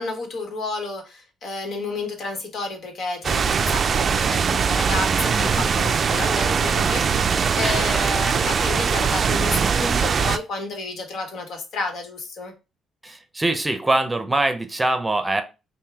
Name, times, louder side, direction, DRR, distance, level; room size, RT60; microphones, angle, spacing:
voice 1, 0.0-12.5, left 3 dB, 65° left, 4 dB, 1.3 m, -31 dB
sound 1, 3.2-10.4, right 6 dB, 50° right, 0.3 m, -21 dB
voice 2, 5.3-5.7 7.6-8.1 13.0-15.4, right 2 dB, 20° right, 8 dB, 0.7 m, -24 dB
5.5 x 2.2 x 3.4 m, 0.29 s
cardioid pair, 75°, 0 cm